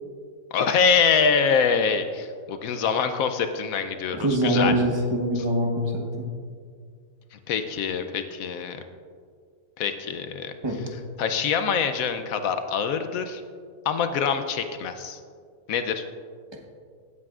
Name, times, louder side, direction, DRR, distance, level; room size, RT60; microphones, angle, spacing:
voice 1, 0.5-4.7 5.4-5.5 7.3-8.8 9.8-10.5 11.2-13.4 13.8-15.2 15.7-16.0, left 6 dB, 75° left, 8 dB, 1.0 m, -25 dB
voice 2, 4.1-6.3 10.6-10.8, equal, 20° right, 1 dB, 1.0 m, -24 dB
16.0 x 8.5 x 2.4 m, 2.1 s
omnidirectional pair, 1.6 m